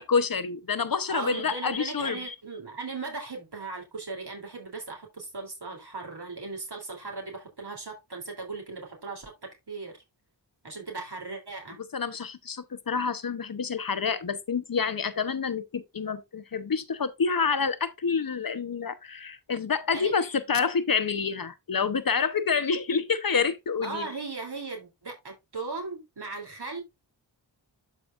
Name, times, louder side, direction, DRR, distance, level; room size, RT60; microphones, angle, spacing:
voice 1, 0.0-2.3 11.9-24.1, left 5 dB, 50° left, 0.8 m, -28 dB
voice 2, 1.1-10.0 10.6-11.8 19.9-20.1 23.8-26.8, right 3 dB, 60° right, 3.2 m, -38 dB
12.5 x 4.8 x 2.5 m
cardioid pair, 45°, 45 cm